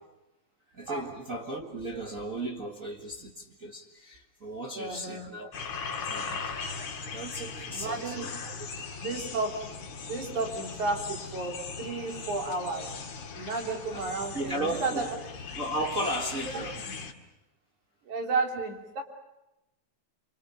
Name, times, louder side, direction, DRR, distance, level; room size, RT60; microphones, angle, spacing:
voice 1, 0.7-5.5 6.1-8.5 13.9-14.1 14.3-15.1 15.6-16.8, right 1 dB, 30° right, 1.8 m, -36 dB
voice 2, 4.7-5.3 7.7-8.3 9.0-9.6 10.1-12.9 13.3-15.1 16.5-16.6 16.9-17.0 18.1-19.0, right 3 dB, 80° right, 4.7 m, -32 dB
sound 1, 5.5-17.1, left 5 dB, 60° left, 3.0 m, -39 dB
28.0 x 25.5 x 6.9 m
omnidirectional pair, 3.4 m